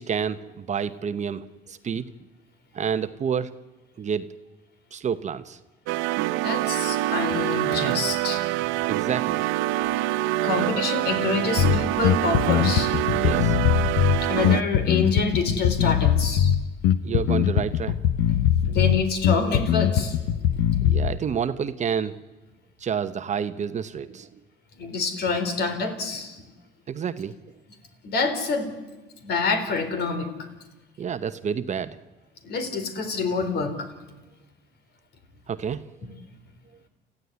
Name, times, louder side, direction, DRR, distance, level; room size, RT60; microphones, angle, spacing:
voice 1, 0.0-2.1 2.7-3.5 4.0-4.3 4.9-5.6 8.8-9.5 13.1-13.6 17.0-18.0 20.8-22.1 22.8-24.3 26.9-27.3 31.0-31.9 35.5-35.9, right 7 dB, 35° right, 11 dB, 1.0 m, -29 dB
Full Brass, 5.9-14.6, right 16 dB, 75° right, 0.7 m, -25 dB
voice 2, 6.4-8.6 10.4-13.3 14.2-16.5 18.6-20.2 24.8-26.4 28.0-28.7 29.2-30.3 32.4-33.9 36.0-36.1, left 4 dB, 55° left, 8 dB, 4.2 m, -27 dB
Bass guitar, 11.6-21.2, left 10 dB, 80° left, 0.9 m, -22 dB
29.0 x 15.0 x 9.8 m, 1.2 s
cardioid pair, 105°, 20 cm